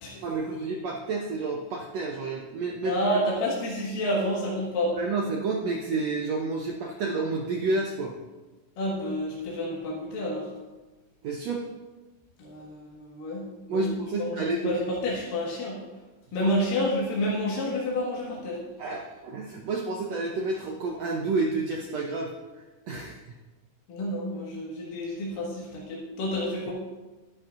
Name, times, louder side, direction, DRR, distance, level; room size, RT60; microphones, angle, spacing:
voice 1, 0.2-2.9 5.0-8.1 11.2-11.6 13.7-14.8 16.4-16.5 18.8-22.3 22.9-23.2, right 3 dB, 80° right, 0 dB, 1.5 m, -30 dB
voice 2, 2.8-4.9 8.8-10.5 12.4-13.5 13.7-15.8 16.3-18.6 23.9-26.7, left 1 dB, 75° left, -5 dB, 3.4 m, -29 dB
11.5 x 11.0 x 2.5 m, 1.2 s
omnidirectional pair, 4.0 m